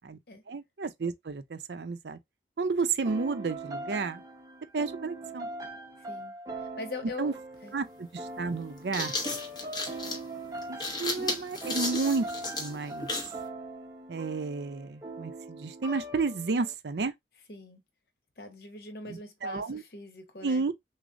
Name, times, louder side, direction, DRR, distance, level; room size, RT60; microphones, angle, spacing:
voice 1, 0.5-2.2 2.6-4.2 4.7-5.5 7.2-7.3 7.7-9.1 10.7-12.3 12.6-13.1 14.1-17.1 19.1-19.8 20.4-20.7, right 4 dB, 75° right, 0.5 m, -31 dB
sound 1, 3.1-16.7, right 2 dB, 20° right, 0.7 m, -41 dB
voice 2, 6.8-7.3 7.6-7.7 17.5-17.8 18.4-20.6, left 3 dB, 60° left, 1.0 m, -42 dB
sound 2, 7.5-7.6 8.6-13.4, left 2 dB, 25° left, 0.8 m, -34 dB
6.2 x 2.1 x 2.5 m
head